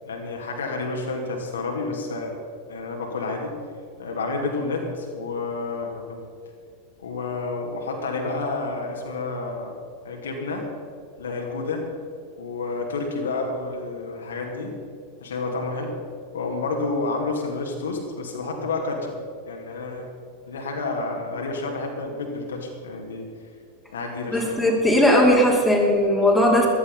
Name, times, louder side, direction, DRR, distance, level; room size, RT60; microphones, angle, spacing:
voice 1, 0.0-2.3 2.7-3.5 4.0-6.2 7.0-9.7 10.0-10.7 11.2-11.9 12.4-14.7 15.2-16.0 16.3-19.1 19.5-20.0 20.5-23.3 23.9-24.6, left 3 dB, 65° left, 0 dB, 2.5 m, -29 dB
voice 2, 24.3-26.7, left 1 dB, 5° left, -3 dB, 3.3 m, -18 dB
15.0 x 12.5 x 5.5 m, 2.3 s
figure-of-eight pair, 90°, 0 cm